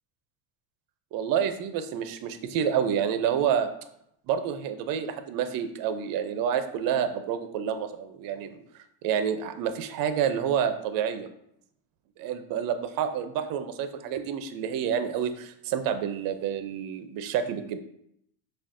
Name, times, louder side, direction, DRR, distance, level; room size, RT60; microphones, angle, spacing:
voice 1, 1.1-3.7 4.3-11.3 12.2-17.8, right 8 dB, 50° right, 9 dB, 0.5 m, -28 dB
5.9 x 2.3 x 2.5 m, 0.75 s
cardioid pair, 130°, 46 cm